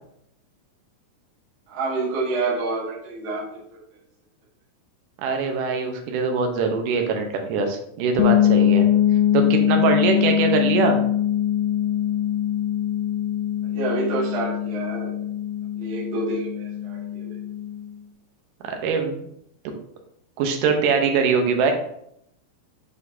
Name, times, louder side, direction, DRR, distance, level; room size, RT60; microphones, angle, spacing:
voice 1, 1.7-3.8 13.6-15.1 15.8-17.3, right 3 dB, 45° right, -6 dB, 2.0 m, -28 dB
voice 2, 5.2-8.9 9.3-11.0 18.6-19.3 20.4-21.7, right 5 dB, 75° right, 4 dB, 2.4 m, -22 dB
sound 1, 8.2-17.9, left 11 dB, 85° left, 2.3 m, -22 dB
8.2 x 5.1 x 2.7 m, 0.72 s
omnidirectional pair, 4.0 m